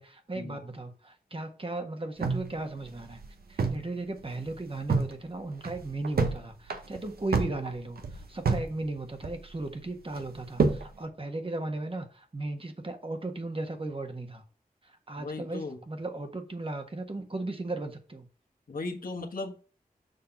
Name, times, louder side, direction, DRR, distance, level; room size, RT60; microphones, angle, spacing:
voice 1, 0.0-3.2 3.5-14.4 14.8-18.3, right 2 dB, 35° right, 1.4 m, -36 dB
sound 1, 2.2-3.9 4.2-4.3 4.6-5.1 5.5-6.4 6.7-8.7 9.0-9.7 10.1-10.9, right 4 dB, 85° right, 0.9 m, -28 dB
voice 2, 15.2-15.8 18.7-19.6, left 3 dB, 70° left, 1.4 m, -36 dB
6.7 x 3.6 x 5.8 m
cardioid pair, 45°, 15 cm